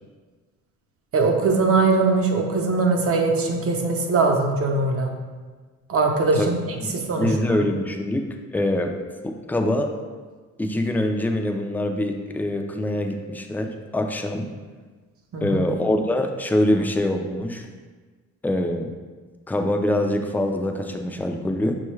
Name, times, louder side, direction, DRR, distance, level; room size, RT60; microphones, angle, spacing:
voice 1, 1.1-5.1 5.9-7.4 15.3-15.6, right 3 dB, 50° right, 2 dB, 0.7 m, -21 dB
voice 2, 6.8-8.3 8.5-8.9 9.2-9.9 10.6-14.5 15.4-17.7 18.4-18.9 19.5-21.8, left 1 dB, 5° left, 3 dB, 0.3 m, -24 dB
6.1 x 2.3 x 3.1 m, 1.4 s
cardioid pair, 90°, 30 cm